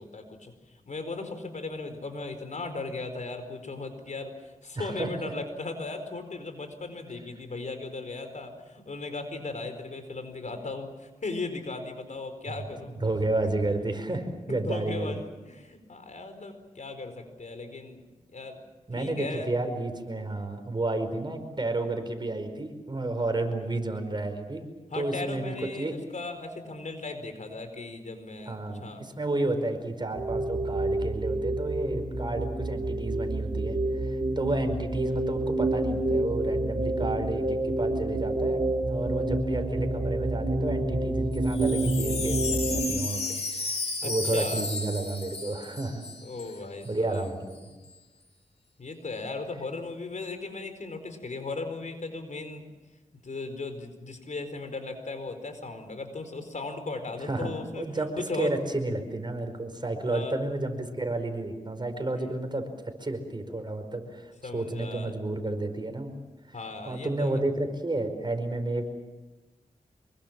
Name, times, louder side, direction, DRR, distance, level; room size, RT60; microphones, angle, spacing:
voice 1, 0.0-13.0 13.4-13.5 14.5-18.0 18.3-18.6 18.9-19.5 24.9-29.0 44.0-44.6 46.2-47.3 48.8-52.6 53.2-57.8 58.2-58.5 60.1-60.4 64.4-65.2 66.5-67.4, left 3 dB, 65° left, 8 dB, 4.5 m, -37 dB
voice 2, 4.7-5.3 13.0-15.2 18.9-24.6 24.9-25.9 28.5-46.1 46.8-47.7 57.2-66.1 66.5-66.6 66.8-68.9, right 2 dB, 35° right, 6 dB, 5.0 m, -31 dB
sound 1, 30.2-42.8, right 2 dB, 65° right, 4.6 m, -28 dB
Wind chime, 41.3-46.6 46.8-46.9 47.1-47.6, left 3 dB, 50° left, 2.5 m, -33 dB
26.0 x 23.0 x 7.6 m, 1.2 s
wide cardioid pair, 65°, 13 cm